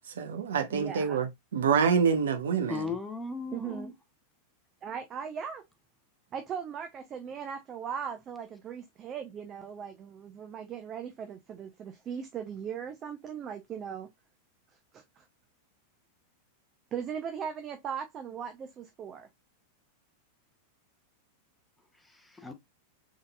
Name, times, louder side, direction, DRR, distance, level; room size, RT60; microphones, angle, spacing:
voice 1, 0.1-2.9, right 6 dB, 65° right, 0.9 m, -27 dB
voice 2, 0.7-1.2 3.5-3.9 4.8-5.6 6.3-14.1 14.9-15.2 16.9-19.3, right 7 dB, 30° right, 0.6 m, -38 dB
voice 3, 2.7-3.9 22.1-22.5, left 4 dB, 10° left, 0.8 m, -37 dB
3.6 x 3.6 x 2.3 m
figure-of-eight pair, 90°, 0 cm